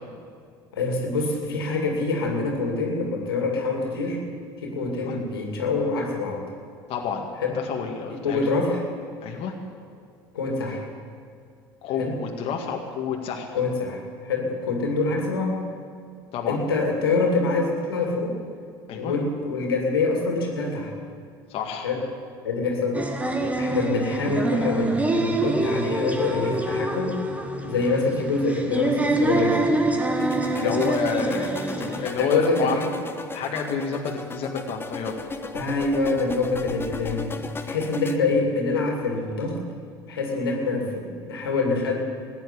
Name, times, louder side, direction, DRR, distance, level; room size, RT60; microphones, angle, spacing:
voice 1, 0.7-4.2 4.6-6.4 7.4-7.6 8.1-8.8 10.3-10.8 12.0-12.2 13.5-15.6 16.5-18.4 18.9-20.9 21.8-22.0 22.4-23.0 23.5-27.2 27.6-29.7 30.5-30.8 32.2-32.9 35.5-39.6 40.1-42.0, left 3 dB, 90° left, 1 dB, 2.6 m, -25 dB
voice 2, 6.9-7.3 7.5-8.4 9.2-9.5 11.8-13.5 16.3-16.6 18.9-19.1 21.5-21.9 30.5-32.8 33.3-35.2, left 6 dB, 55° left, 1 dB, 1.9 m, -29 dB
sound 1, 22.9-32.1, right 2 dB, 10° right, 1.7 m, -25 dB
sound 2, 30.2-38.2, left 3 dB, 20° left, 1.1 m, -36 dB
15.0 x 9.5 x 9.9 m, 2.2 s
hypercardioid pair, 75°, 12 cm